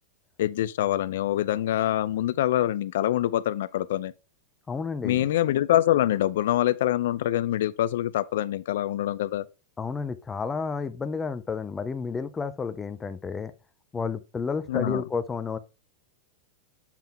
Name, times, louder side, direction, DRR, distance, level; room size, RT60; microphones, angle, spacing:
voice 1, 0.4-4.1 5.0-9.5 14.7-15.0, left 13 dB, 70° left, 0.4 m, -25 dB
voice 2, 4.7-5.3 9.8-13.5 13.9-15.6, left 5 dB, 10° left, 0.4 m, -31 dB
7.3 x 3.8 x 4.2 m
supercardioid pair, 160°, 0 cm